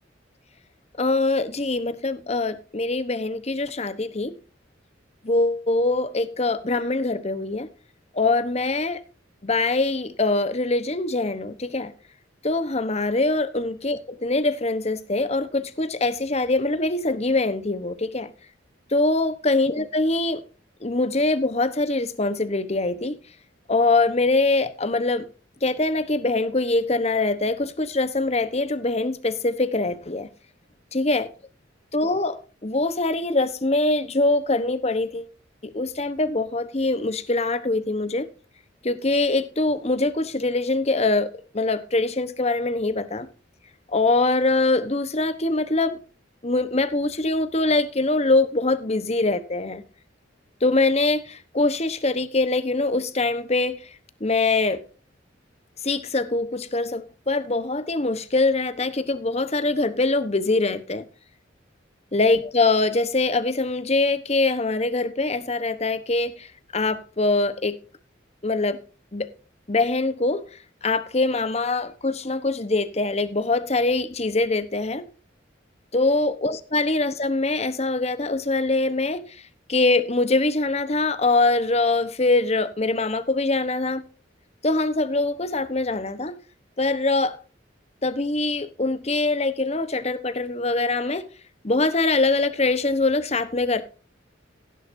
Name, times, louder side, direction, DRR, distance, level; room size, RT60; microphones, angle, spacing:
voice 1, 1.0-4.3 5.2-7.7 8.1-9.0 9.4-11.9 12.4-18.3 18.9-20.4 20.8-23.2 23.7-25.3 25.6-30.3 30.9-31.3 31.9-35.3 35.6-38.2 38.8-43.3 43.9-46.0 46.4-49.8 50.6-53.8 54.2-54.8 55.8-61.0 62.1-67.8 68.4-68.8 69.1-69.3 69.7-75.1 75.9-79.4 79.7-84.0 84.6-86.4 86.8-87.4 88.0-91.3 91.6-93.8, left 2 dB, 35° left, 1.1 m, -23 dB
16.5 x 10.5 x 2.7 m
head